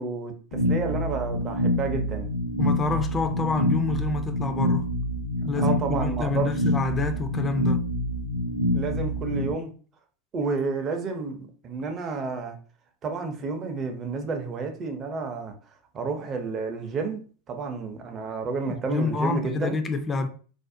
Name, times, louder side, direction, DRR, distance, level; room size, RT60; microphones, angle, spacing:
voice 1, 0.0-2.3 5.4-6.5 8.7-9.7 10.3-12.6 13.0-15.5 15.9-19.8, right 4 dB, 35° right, 0.5 m, -30 dB
sound 1, 0.5-9.5, equal, 70° left, 0.6 m, -26 dB
voice 2, 2.6-4.9 5.5-7.8 18.7-20.3, left 3 dB, 20° left, 0.3 m, -28 dB
2.5 x 2.0 x 2.5 m
hypercardioid pair, 105°, 0 cm